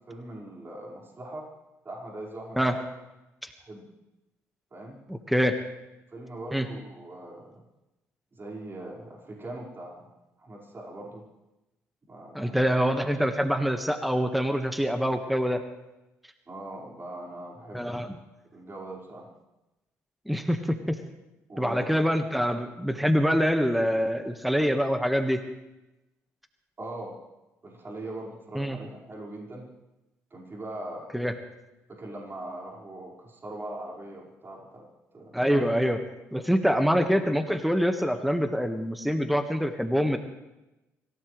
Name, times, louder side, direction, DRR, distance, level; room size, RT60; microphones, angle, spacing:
voice 1, 0.1-1.5 1.8-2.8 3.6-3.8 4.7-5.0 6.1-7.6 8.3-10.1 10.4-11.3 12.1-12.8 16.5-18.0 18.5-19.3 21.5-22.0 26.8-27.2 27.6-29.7 30.3-31.1 31.9-34.9 35.1-35.6, right 1 dB, 35° right, -3 dB, 5.3 m, -41 dB
voice 2, 5.1-5.6 6.5-6.7 12.3-15.6 17.7-18.1 20.2-21.0 21.6-25.4 28.5-28.8 31.1-31.3 35.3-36.0 36.3-40.2, equal, ahead, 7 dB, 1.6 m, -25 dB
26.0 x 16.5 x 3.4 m, 0.99 s
hypercardioid pair, 55°, 7 cm